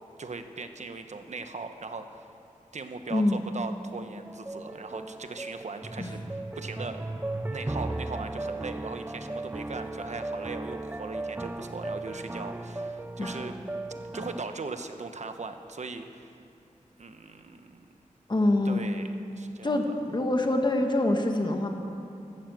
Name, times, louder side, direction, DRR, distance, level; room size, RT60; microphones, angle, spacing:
voice 1, 0.2-2.3 2.7-7.0 7.5-13.6 14.0-16.4 17.0-18.0 18.6-19.9, right 4 dB, 60° right, 7 dB, 1.1 m, -39 dB
voice 2, 3.1-3.4 6.0-6.1 13.2-13.4 18.3-18.8 19.6-21.7, left 1 dB, 35° left, 3 dB, 1.6 m, -25 dB
sound 1, 4.3-14.4, right 2 dB, 15° right, 0.5 m, -36 dB
14.5 x 12.0 x 7.8 m, 2.6 s
wide cardioid pair, 85°, 14 cm